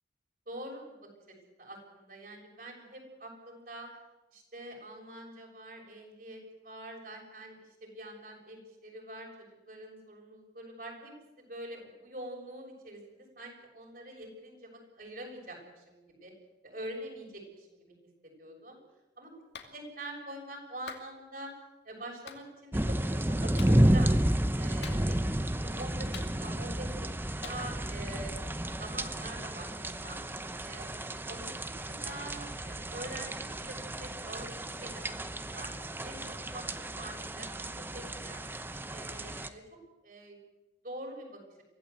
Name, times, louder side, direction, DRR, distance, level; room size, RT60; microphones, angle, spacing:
voice 1, 0.5-3.9 4.3-16.3 16.6-18.0 18.2-18.8 19.2-19.3 19.7-21.5 21.8-24.1 24.5-30.2 30.6-31.7 32.0-34.5 34.8-35.7 36.0-38.4 38.9-39.6 40.0-40.4 40.8-41.4, right 1 dB, 50° right, 1 dB, 6.6 m, -45 dB
Clapping, 19.5-19.7 20.9-21.1 22.3-22.4 23.6-23.8 24.8-25.3 26.1-26.7 27.4-27.6, left 6 dB, 75° left, 2.4 m, -45 dB
sound 1, 22.7-39.5, right 1 dB, 10° right, 0.8 m, -32 dB
23.5 x 16.0 x 8.1 m, 1.1 s
head